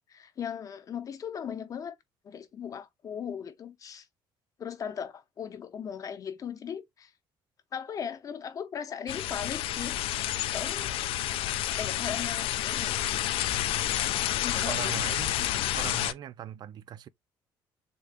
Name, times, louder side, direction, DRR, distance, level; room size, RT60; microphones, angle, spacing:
voice 1, 0.1-2.0 2.2-4.1 4.6-7.1 7.7-10.0 10.5-11.0 11.8-13.0 14.4-14.9 15.4-15.5, left 8 dB, 40° left, 0.7 m, -38 dB
sound 1, 9.1-16.1, left 13 dB, 75° left, 0.4 m, -29 dB
voice 2, 14.6-15.3 15.7-17.1, right 11 dB, 50° right, 0.4 m, -39 dB
3.8 x 2.4 x 3.3 m
cardioid pair, 145°, 9 cm